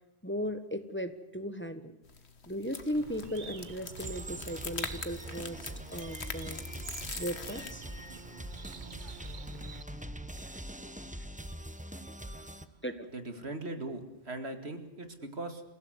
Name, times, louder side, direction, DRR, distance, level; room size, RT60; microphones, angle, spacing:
voice 1, 0.2-1.9 2.5-6.6 7.2-7.9 9.7-9.8 10.4-10.6 12.8-13.1, equal, 10° left, 10 dB, 1.5 m, -37 dB
sound 1, 2.0-7.7, left 5 dB, 90° left, 1.8 m, -43 dB
Bird, 2.9-9.8, right 5 dB, 50° right, 1.1 m, -47 dB
sound 2, 4.0-12.6, equal, 5° right, 1.1 m, -43 dB
voice 2, 13.1-15.6, right 2 dB, 80° right, 7 dB, 2.6 m, -39 dB
28.0 x 16.5 x 8.1 m, 0.91 s
omnidirectional pair, 1.1 m